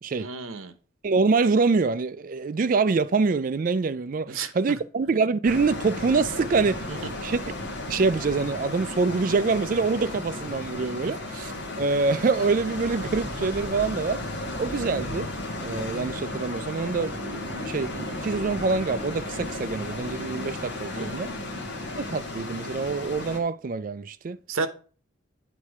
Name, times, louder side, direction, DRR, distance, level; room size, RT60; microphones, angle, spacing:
voice 1, 0.2-0.7 4.3-4.5 20.9-21.2 24.5-24.7, right 4 dB, 85° right, 0.8 m, -31 dB
voice 2, 1.0-6.9 7.2-7.4 7.9-11.5 11.8-14.2 14.6-15.3 15.6-21.3 22.0-24.4, right 4 dB, 40° right, 0.3 m, -25 dB
sound 1, 5.4-23.4, left 2 dB, 55° left, 1.6 m, -34 dB
8.3 x 4.2 x 4.7 m
head